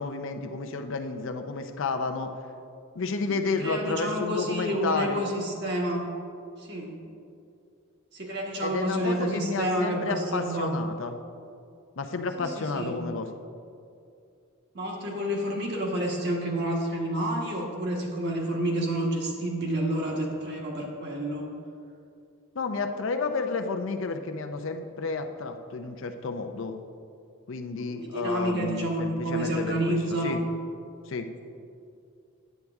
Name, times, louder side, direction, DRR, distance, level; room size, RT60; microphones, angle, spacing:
voice 1, 0.0-2.3 3.0-5.2 8.6-11.2 12.0-13.3 22.5-26.8 27.5-30.4 31.1-31.3, left 4 dB, 60° left, 6 dB, 0.5 m, -31 dB
voice 2, 3.3-6.0 6.6-6.9 8.1-10.7 12.4-12.9 14.7-21.4 27.9-30.4, right 1 dB, 50° right, -1 dB, 1.4 m, -29 dB
9.2 x 8.2 x 3.5 m, 2.5 s
head